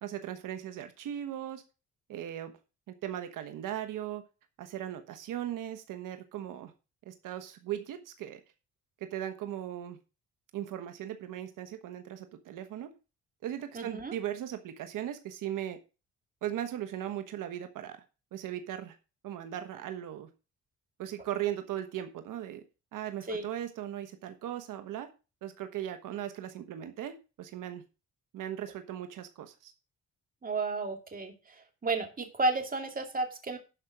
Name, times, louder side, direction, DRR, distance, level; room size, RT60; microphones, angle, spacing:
voice 1, 0.0-1.6 2.1-2.5 2.9-4.2 4.6-6.7 7.1-8.4 9.0-10.0 10.5-12.9 13.4-15.8 16.4-18.0 18.3-18.9 19.2-20.3 21.0-22.6 22.9-25.1 25.4-27.8 28.3-29.7, right 11 dB, 90° right, 8 dB, 1.3 m, -38 dB
voice 2, 13.7-14.1 23.3-23.4 30.4-31.3 31.8-33.6, right 3 dB, 30° right, 4 dB, 2.4 m, -32 dB
11.5 x 5.2 x 5.9 m, 0.31 s
cardioid pair, 110°, 31 cm